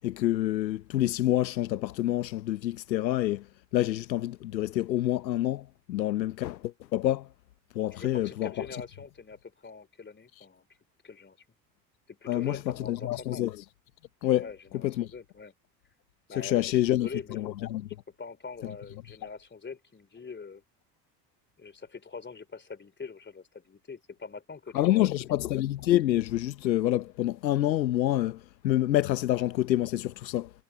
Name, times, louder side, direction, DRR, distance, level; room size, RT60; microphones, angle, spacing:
voice 1, 0.0-3.5 3.7-7.3 7.7-8.7 12.3-13.5 14.2-14.5 14.8-15.1 16.4-17.9 24.7-30.5, left 14 dB, 85° left, 1.0 m, -27 dB
voice 2, 7.9-10.7 11.0-11.4 12.1-13.4 14.4-15.5 16.3-17.5 18.2-20.6 21.6-25.1, left 5 dB, 20° left, 3.1 m, -43 dB
hypercardioid pair, 65°, 50 cm